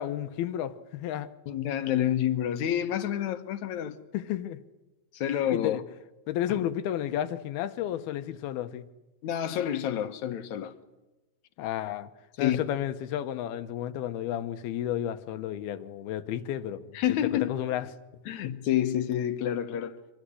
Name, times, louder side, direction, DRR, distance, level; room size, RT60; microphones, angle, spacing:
voice 1, 0.0-1.3 4.1-4.6 5.5-5.8 6.3-8.9 11.6-12.1 12.4-17.0 17.4-17.9, left 11 dB, 85° left, 3.0 m, -32 dB
voice 2, 1.5-4.0 5.1-5.8 6.5-6.6 9.2-10.7 12.4-12.6 16.9-17.6 18.3-20.0, left 11 dB, 60° left, 2.2 m, -28 dB
26.0 x 22.5 x 10.0 m
omnidirectional pair, 4.3 m